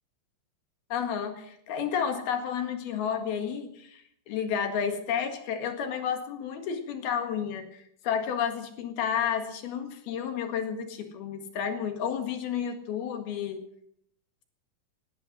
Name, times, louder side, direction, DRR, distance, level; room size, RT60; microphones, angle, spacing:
voice 1, 0.9-13.6, left 8 dB, 80° left, 6 dB, 3.8 m, -31 dB
18.5 x 12.5 x 6.2 m, 0.71 s
omnidirectional pair, 4.3 m